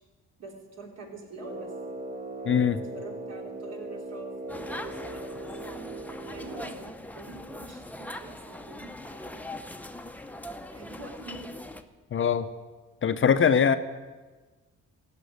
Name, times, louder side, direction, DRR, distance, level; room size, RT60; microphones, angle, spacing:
voice 1, 0.4-1.7 2.9-5.5 6.3-6.9 7.1-9.3 10.7-11.5, right 3 dB, 60° right, 0 dB, 3.3 m, -45 dB
Brass instrument, 1.4-7.0, right 2 dB, 25° right, 1.0 m, -39 dB
voice 2, 2.4-2.8 12.1-12.5 13.0-13.8, left 7 dB, 40° left, 11 dB, 0.7 m, -22 dB
sound 1, 4.5-11.8, left 1 dB, 5° left, 0.8 m, -41 dB
15.5 x 6.0 x 9.4 m, 1.3 s
cardioid pair, 90°, 30 cm